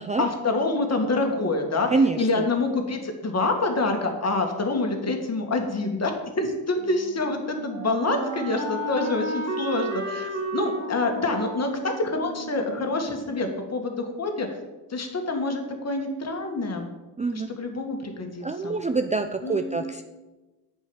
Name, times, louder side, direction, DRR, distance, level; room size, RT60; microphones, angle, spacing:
voice 1, 0.2-6.1 6.4-14.5 14.9-16.9 17.3-18.7 19.4-19.8, left 3 dB, 35° left, 4 dB, 2.0 m, -27 dB
voice 2, 1.9-2.5 17.2-17.6 18.4-20.0, right 4 dB, 15° right, 8 dB, 0.5 m, -25 dB
Wind instrument woodwind instrument, 6.8-13.6, right 2 dB, 40° right, 2.6 m, -34 dB
8.4 x 5.5 x 7.2 m, 1.1 s
supercardioid pair, 70°, 44 cm